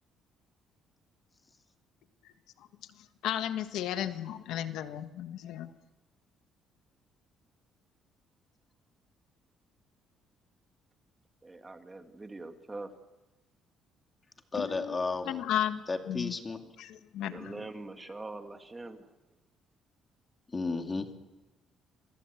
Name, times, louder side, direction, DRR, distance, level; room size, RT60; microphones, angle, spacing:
voice 1, 3.2-5.7 14.6-15.0 15.3-16.3 16.8-17.6, left 11 dB, 75° left, 9 dB, 1.4 m, -34 dB
voice 2, 11.4-12.9 17.3-19.1, right 2 dB, 15° right, 6 dB, 2.1 m, -43 dB
voice 3, 14.5-15.4 15.9-16.7 20.5-21.1, left 3 dB, 25° left, 5 dB, 2.5 m, -33 dB
29.0 x 23.0 x 8.2 m, 1.1 s
cardioid pair, 125°, 0 cm